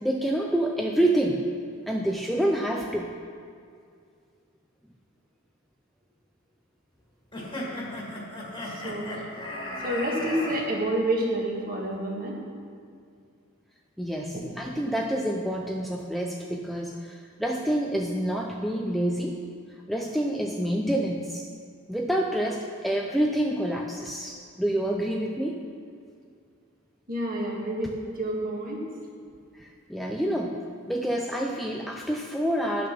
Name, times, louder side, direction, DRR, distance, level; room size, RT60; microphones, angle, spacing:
voice 1, 0.0-1.4 1.9-3.1 14.0-19.4 19.9-21.5 21.9-25.6 29.6-30.6 30.9-32.9, right 1 dB, ahead, 0 dB, 0.4 m, -27 dB
sound 1, 7.3-10.6, left 1 dB, 25° left, 1.8 m, -35 dB
voice 2, 8.5-9.1 9.8-12.4 14.3-14.4 27.1-28.8, right 1 dB, 40° right, -2 dB, 1.7 m, -29 dB
10.5 x 6.0 x 6.0 m, 2.3 s
head